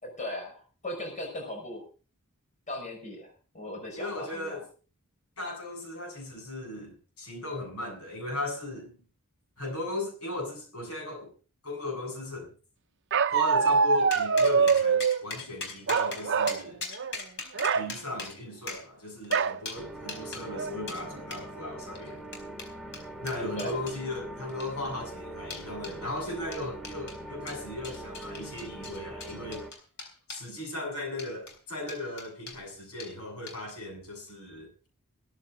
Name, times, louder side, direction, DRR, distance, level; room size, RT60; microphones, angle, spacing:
voice 1, 0.0-1.8 2.7-4.6 23.6-23.8, left 1 dB, 35° left, 1 dB, 5.9 m, -38 dB
voice 2, 4.0-4.7 5.4-9.0 9.6-11.3 11.6-12.5 13.3-16.8 17.8-22.2 23.2-29.7 30.3-34.7, left 2 dB, 75° left, 2 dB, 7.8 m, -37 dB
Bark, 13.1-15.2 15.9-16.6 16.9-17.2 17.5-17.9 19.3-19.6 20.1-20.2 20.5-21.0, right 5 dB, 55° right, 0.7 m, -24 dB
sound 1, 14.1-20.5 20.9-21.0 21.3-21.5 22.0-24.0 24.5-24.9 25.5-26.0 26.5-27.2 27.5-30.5 31.1-31.6 31.9-32.6 33.0-33.1 33.5-33.8, left 4 dB, 55° left, 4.4 m, -41 dB
sound 2, 19.7-29.7, right 1 dB, ahead, 2.1 m, -42 dB
16.0 x 14.0 x 3.9 m, 0.36 s
head